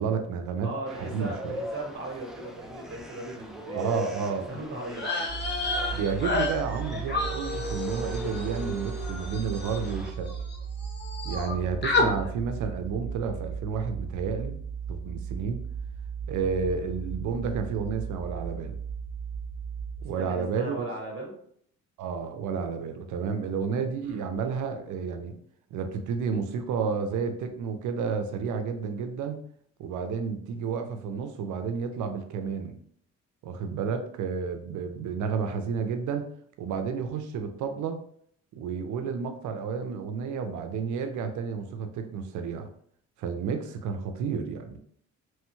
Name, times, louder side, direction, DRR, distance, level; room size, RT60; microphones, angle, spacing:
voice 1, 0.0-0.7 1.0-1.6 3.7-4.5 5.9-10.3 11.2-14.6 14.9-15.6 16.3-18.8 20.0-20.9 22.0-25.4 25.7-29.4 29.8-32.7 33.4-36.3 36.6-38.0 38.6-42.7 43.2-44.8, right 6 dB, 75° right, 7 dB, 0.5 m, -31 dB
voice 2, 0.6-5.1 20.0-21.3 24.0-24.2, right 2 dB, 45° right, -1 dB, 1.0 m, -38 dB
sound 1, 0.9-10.1, equal, ahead, 0.3 m, -39 dB
sound 2, 4.9-10.6 10.8-11.5 11.8-12.1, left 3 dB, 35° left, 0.7 m, -31 dB
sound 3, 5.3-20.1, right 6 dB, 80° left, 1.0 m, -36 dB
3.1 x 2.2 x 3.0 m, 0.64 s
cardioid pair, 90°, 30 cm